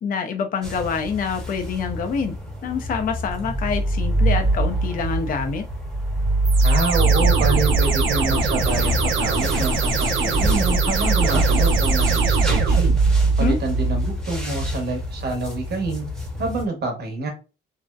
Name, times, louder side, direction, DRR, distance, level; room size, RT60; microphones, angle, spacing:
voice 1, 0.0-5.7 13.2-13.6, left 5 dB, 45° left, 0.4 m, -26 dB
sound 1, 0.6-16.6, right 2 dB, 5° left, 0.8 m, -23 dB
sound 2, 6.4-13.3, right 3 dB, 75° right, 0.6 m, -23 dB
voice 2, 6.6-13.0 13.4-16.0 16.4-17.3, right 3 dB, 55° right, 1.0 m, -27 dB
2.6 x 2.0 x 2.3 m
cardioid pair, 90°, 20 cm